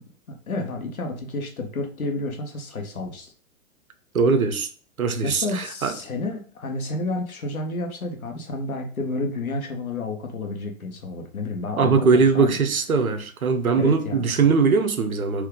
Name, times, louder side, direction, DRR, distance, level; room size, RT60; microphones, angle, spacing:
voice 1, 0.3-3.3 5.2-12.5 13.7-14.5, left 2 dB, 80° left, 1.1 m, -30 dB
voice 2, 4.1-4.7 5.0-5.9 11.8-15.5, right 5 dB, 85° right, 0.7 m, -21 dB
3.5 x 2.7 x 3.6 m
figure-of-eight pair, 115°, 42 cm